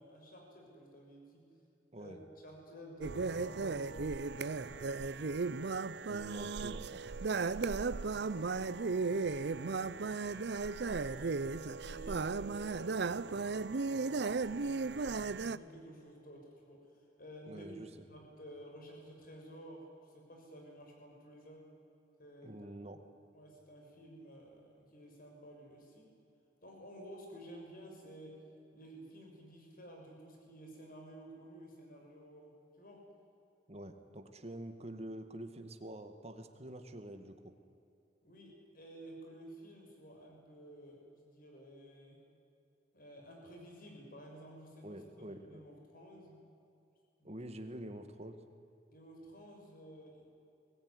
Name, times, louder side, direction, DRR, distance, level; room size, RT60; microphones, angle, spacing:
voice 1, 0.0-1.5 1.9-5.4 7.5-11.4 11.8-16.9 17.2-17.7 18.1-21.7 22.2-22.7 23.3-26.1 26.6-28.4 28.7-33.1 38.2-42.2 42.9-46.4 47.2-47.3 48.9-50.3, equal, 50° left, 0 dB, 6.4 m, -53 dB
sound 1, 3.0-15.6, right 4 dB, 65° right, 0.6 m, -36 dB
voice 2, 6.1-7.0 17.5-17.9 22.4-23.0 33.7-37.5 44.8-45.6 47.2-48.4, right 1 dB, 35° right, 7 dB, 1.9 m, -47 dB
22.5 x 19.0 x 9.8 m, 2.7 s
head